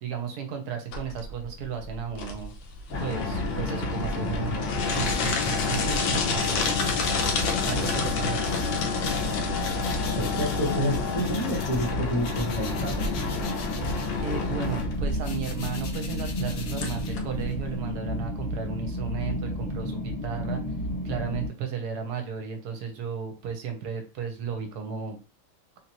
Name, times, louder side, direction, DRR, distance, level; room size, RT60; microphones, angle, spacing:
voice 1, 0.0-2.5 3.0-4.6 4.9-6.8 7.6-8.6 14.2-20.6 21.0-25.2, right 7 dB, 65° right, 4 dB, 1.2 m, -34 dB
sound 1, 0.9-17.9, left 4 dB, 80° left, 1.4 m, -30 dB
sound 2, 2.9-21.5, left 1 dB, 15° left, 1.0 m, -32 dB
sound 3, 4.8-11.9 12.2-17.6, left 5 dB, 65° left, 0.9 m, -44 dB
voice 2, 10.2-13.1, equal, 35° left, -3 dB, 0.5 m, -29 dB
3.8 x 2.8 x 2.9 m, 0.33 s
omnidirectional pair, 2.1 m